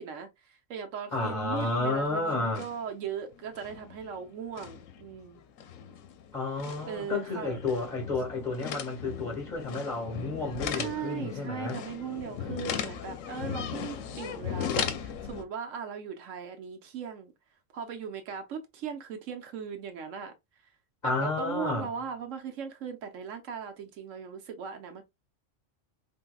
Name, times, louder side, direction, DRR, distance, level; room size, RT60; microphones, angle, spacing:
voice 1, 0.0-5.4 6.9-7.6 10.7-17.3 17.7-20.3 21.0-25.0, right 7 dB, 80° right, 1.1 m, -38 dB
voice 2, 1.1-2.6 6.3-11.8 21.0-21.9, left 3 dB, 35° left, 2.0 m, -31 dB
sound 1, 1.4-2.1 2.3-2.9 3.3-15.4, left 8 dB, 90° left, 1.0 m, -38 dB
4.4 x 3.2 x 2.2 m
omnidirectional pair, 1.3 m